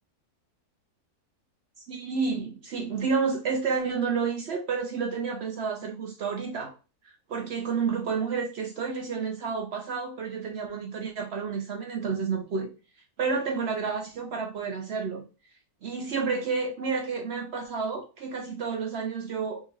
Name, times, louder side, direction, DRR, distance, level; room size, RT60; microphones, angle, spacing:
voice 1, 1.8-6.7 7.0-12.7 13.2-15.2 15.8-19.6, right 5 dB, 65° right, 0.6 m, -30 dB
3.6 x 2.6 x 3.0 m
omnidirectional pair, 1.6 m